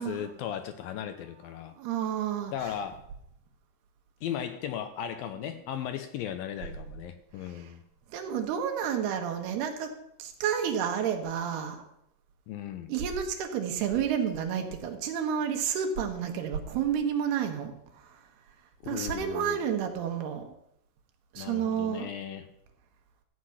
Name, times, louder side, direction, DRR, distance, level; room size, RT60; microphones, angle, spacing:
voice 1, 0.0-1.7 2.5-3.0 4.2-7.8 12.5-12.9 18.8-19.6 21.4-22.5, left 9 dB, 75° left, 9 dB, 2.2 m, -36 dB
voice 2, 1.8-2.7 7.5-7.7 8.1-11.9 12.9-18.2 18.8-20.5 21.3-22.1, right 8 dB, 80° right, 5 dB, 3.3 m, -30 dB
14.0 x 8.1 x 5.7 m, 0.77 s
omnidirectional pair, 4.6 m